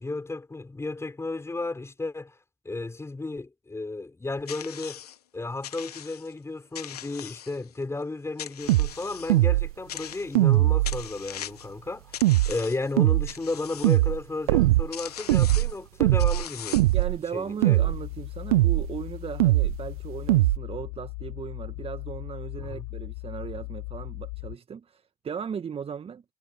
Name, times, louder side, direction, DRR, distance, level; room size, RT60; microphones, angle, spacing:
voice 1, 0.0-2.4 2.6-5.0 5.3-16.9 17.3-17.9 22.6-22.9, left 3 dB, 15° left, 6.0 m, -33 dB
sound 1, 4.5-5.2 5.6-6.3 6.7-7.8 8.4-9.4 9.9-10.5 10.8-11.7 12.1-12.9 13.3-14.0 14.6-14.7 14.9-15.8 16.2-17.0, left 10 dB, 80° left, 1.6 m, -40 dB
sound 2, 8.7-8.9 9.3-9.7 10.3-11.0 12.2-12.5 13.0-13.3 13.8-14.2 14.5-14.9 15.3-15.7 16.0-16.4 16.7-17.2 17.6-18.0 18.5-18.9 19.4-19.8 20.3-20.6, right 18 dB, 70° right, 0.8 m, -20 dB
voice 2, 16.9-26.2, right 7 dB, 30° right, 2.0 m, -37 dB
sound 3, 17.7-24.6, left 31 dB, 60° left, 2.3 m, -38 dB
figure-of-eight pair, 70°, 20 cm